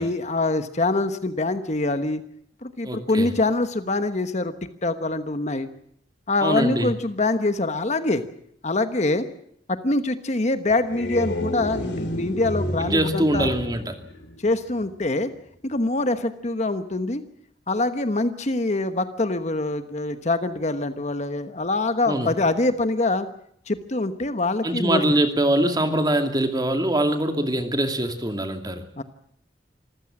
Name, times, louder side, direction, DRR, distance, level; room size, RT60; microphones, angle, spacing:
voice 1, 0.0-2.2 2.6-4.5 4.8-5.7 6.3-8.2 8.6-9.3 9.7-13.5 14.4-15.3 15.6-17.2 17.7-23.3 23.7-25.0 29.0-29.1, left 2 dB, 40° left, 10 dB, 1.2 m, -24 dB
voice 2, 2.8-3.3 6.4-6.9 12.8-13.9 22.1-22.3 24.6-28.8, right 1 dB, 20° right, 6 dB, 2.4 m, -23 dB
sound 1, 10.7-14.9, left 1 dB, 75° left, 3.1 m, -31 dB
26.0 x 15.0 x 8.7 m, 0.70 s
head